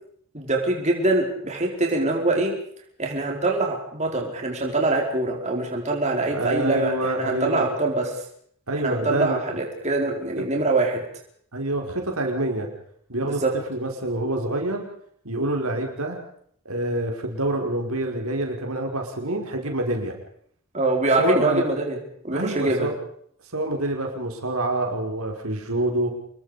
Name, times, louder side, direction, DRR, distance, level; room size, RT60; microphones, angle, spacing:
voice 1, 0.3-2.6 3.0-8.1 8.7-11.0 13.2-13.5 20.7-22.0 22.2-22.9, right 2 dB, 30° right, 1 dB, 4.8 m, -24 dB
voice 2, 6.3-7.7 8.7-9.4 10.4-10.6 11.5-12.7 13.1-13.4 13.7-14.8 15.2-16.2 16.7-20.2 21.2-21.7 22.3-22.9 23.5-26.1, right 1 dB, 85° right, 2 dB, 5.4 m, -26 dB
28.0 x 22.0 x 5.3 m, 0.64 s
head